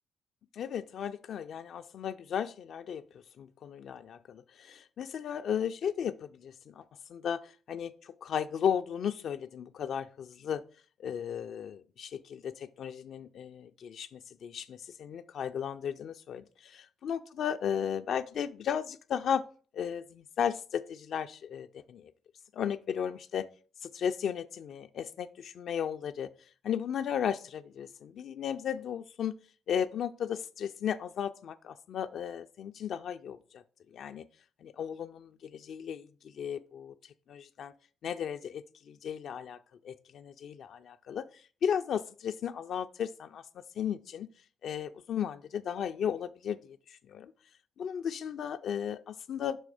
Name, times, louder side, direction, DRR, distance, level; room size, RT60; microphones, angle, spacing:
voice 1, 0.5-3.0 3.4-6.8 7.1-10.6 11.0-19.4 19.7-22.1 22.5-23.5 23.8-26.3 26.6-29.3 29.7-33.6 33.9-34.2 34.6-37.7 38.0-39.6 39.8-43.4 43.8-44.3 44.6-47.3 47.8-49.6, left 8 dB, 65° left, 0.3 m, -35 dB
6.1 x 4.1 x 4.8 m
cardioid pair, 90°, 0 cm